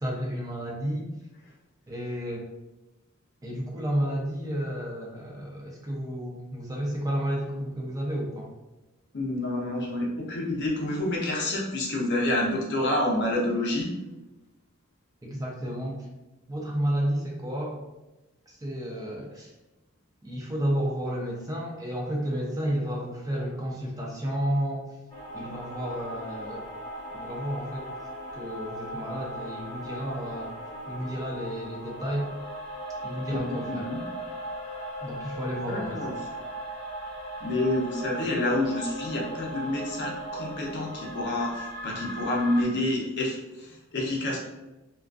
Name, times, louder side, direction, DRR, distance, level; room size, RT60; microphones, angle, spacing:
voice 1, 0.0-1.1 1.9-2.5 3.4-8.5 15.2-16.1 16.5-17.8 18.5-19.5 20.2-24.9 25.3-26.7 27.1-27.8 28.3-30.5 30.9-32.3 33.0-33.9 35.0-36.1, equal, 15° right, -2 dB, 0.4 m, -31 dB
voice 2, 9.1-13.9 33.3-34.0 35.7-36.1 37.4-44.4, left 1 dB, 50° left, -2 dB, 0.6 m, -28 dB
sound 1, 25.1-42.6, equal, 20° left, 0.8 m, -38 dB
2.3 x 2.3 x 2.4 m, 1.0 s
head